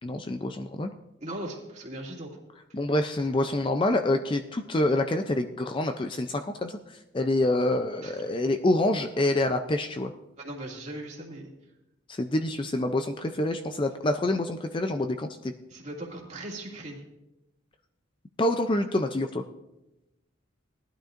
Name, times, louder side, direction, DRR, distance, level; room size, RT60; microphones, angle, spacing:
voice 1, 0.0-0.9 2.7-10.1 12.1-15.5 18.4-19.4, left 1 dB, 25° left, 7 dB, 0.4 m, -27 dB
voice 2, 1.2-2.3 8.0-8.2 10.4-11.5 15.7-17.0, right 1 dB, 35° right, -2 dB, 2.3 m, -38 dB
18.5 x 11.5 x 2.5 m, 0.94 s
head